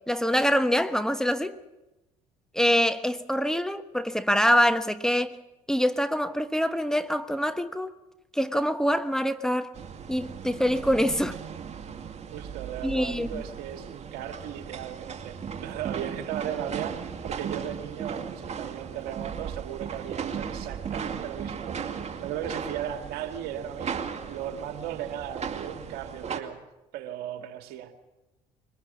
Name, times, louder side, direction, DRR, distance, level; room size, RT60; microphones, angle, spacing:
voice 1, 0.1-1.5 2.5-5.4 5.7-7.9 8.3-9.7 10.1-11.4 12.8-13.4, equal, 5° left, 1.2 m, -25 dB
sound 1, 9.7-26.4, right 7 dB, 40° right, 2.3 m, -36 dB
voice 2, 12.3-24.0 24.3-26.6 26.9-27.9, right 10 dB, 70° right, 1.9 m, -37 dB
22.5 x 20.0 x 7.2 m
hypercardioid pair, 60°, 17 cm